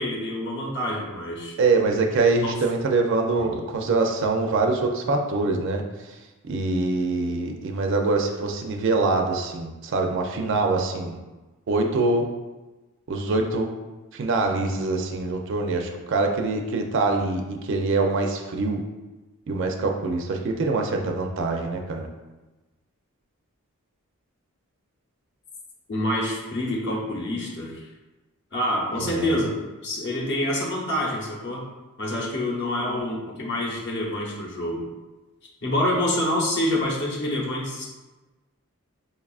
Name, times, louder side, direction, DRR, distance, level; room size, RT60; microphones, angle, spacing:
voice 1, 0.0-1.6 2.4-2.6 3.4-3.5 25.9-27.9 28.5-29.6 29.8-31.7 32.0-34.8 35.6-37.9, left 1 dB, 50° left, -3 dB, 0.7 m, -27 dB
voice 2, 1.6-5.8 6.4-11.2 11.7-12.2 13.1-13.7 14.1-18.8 19.5-22.1 29.0-29.3, right 3 dB, 55° right, 3 dB, 0.4 m, -24 dB
5.3 x 2.3 x 2.3 m, 1.2 s
head